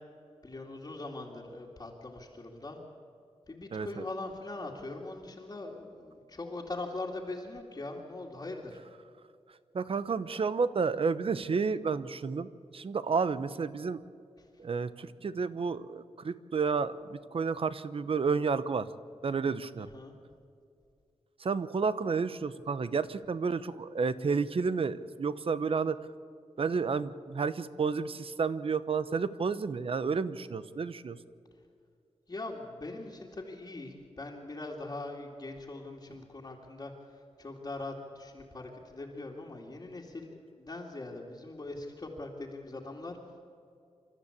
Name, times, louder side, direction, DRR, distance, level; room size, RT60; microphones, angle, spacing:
voice 1, 0.4-2.8 3.5-8.8 14.4-14.5 19.8-20.1 32.3-43.2, left 2 dB, 30° left, -4 dB, 2.4 m, -41 dB
voice 2, 3.7-4.0 9.7-14.0 14.6-18.9 19.2-19.9 21.4-26.0 26.6-31.2, right 5 dB, 55° right, 14 dB, 0.9 m, -31 dB
28.0 x 13.5 x 8.5 m, 2.5 s
wide cardioid pair, 130°, 11 cm